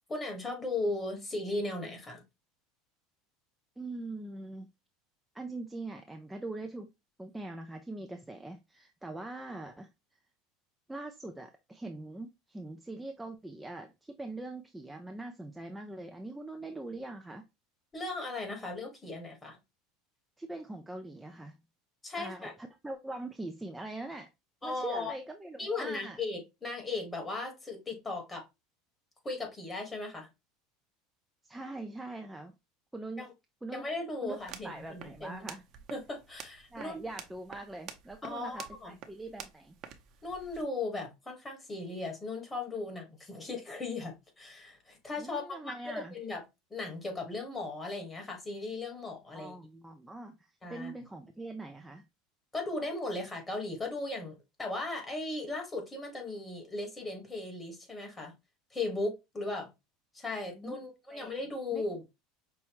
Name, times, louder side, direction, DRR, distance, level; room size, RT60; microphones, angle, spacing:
voice 1, 0.1-2.2 17.9-19.6 22.0-22.5 24.6-25.1 25.6-28.4 29.2-30.3 33.2-33.3 33.7-35.5 35.9-37.0 38.2-38.9 40.2-46.4 46.7-49.6 50.6-50.9 52.5-58.3 58.7-59.7 60.1-62.0, left 2 dB, 15° left, 1.6 m, -37 dB
voice 2, 3.8-4.7 5.3-6.9 7.2-9.9 10.9-17.4 20.4-21.6 22.1-24.3 24.6-26.2 31.4-32.5 32.9-33.2 33.6-33.8 34.2-35.6 36.7-39.7 45.2-46.1 49.3-52.0 60.5-61.3 61.7-61.8, right 2 dB, 5° right, 0.4 m, -42 dB
sound 1, 34.3-40.6, right 8 dB, 45° right, 0.7 m, -49 dB
5.6 x 2.3 x 3.0 m
supercardioid pair, 130°, 0 cm